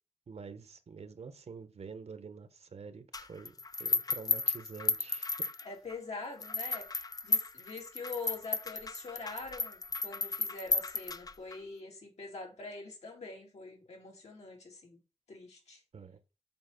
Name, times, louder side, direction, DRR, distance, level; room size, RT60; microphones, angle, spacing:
voice 1, 0.3-3.5 3.8-5.4 15.9-16.2, right 5 dB, 75° right, 1.1 m, -47 dB
sound 1, 3.1-5.9 6.4-11.6, left 3 dB, 35° left, 0.4 m, -34 dB
voice 2, 5.6-6.8 7.2-15.0 15.3-15.8, left 3 dB, 85° left, 3.3 m, -44 dB
7.6 x 4.8 x 5.9 m
wide cardioid pair, 85°, 11 cm